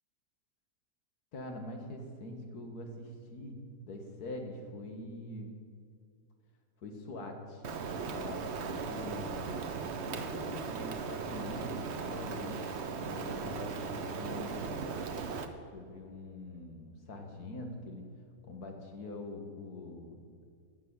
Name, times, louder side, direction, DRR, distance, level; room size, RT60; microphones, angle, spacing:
voice 1, 1.3-5.5 6.8-7.6 8.1-9.6 10.0-12.7 13.0-14.8 15.7-18.1 18.4-20.2, left 2 dB, 55° left, 3 dB, 2.1 m, -44 dB
Rain, 7.6-15.5, right 5 dB, 50° right, 0.9 m, -37 dB
12.0 x 8.5 x 8.9 m, 2.2 s
omnidirectional pair, 2.0 m